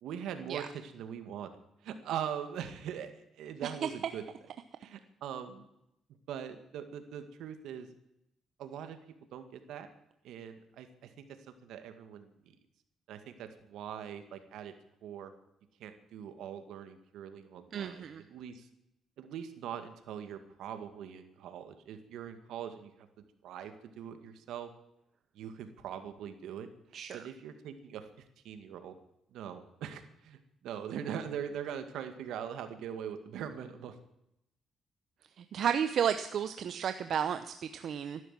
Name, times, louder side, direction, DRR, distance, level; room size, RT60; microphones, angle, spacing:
voice 1, 0.0-4.2 4.8-5.7 6.3-7.9 8.6-9.0 9.3-9.9 10.2-12.6 13.1-14.7 15.0-15.3 15.8-18.7 19.2-22.9 23.2-24.7 25.3-26.7 27.1-28.1 28.4-29.0 29.3-34.0, right 8 dB, 85° right, 8 dB, 2.0 m, -42 dB
voice 2, 17.7-18.2 26.9-27.2 35.4-38.2, right 8 dB, 65° right, 9 dB, 0.8 m, -33 dB
14.5 x 12.0 x 7.6 m, 0.81 s
cardioid pair, 90°, 0 cm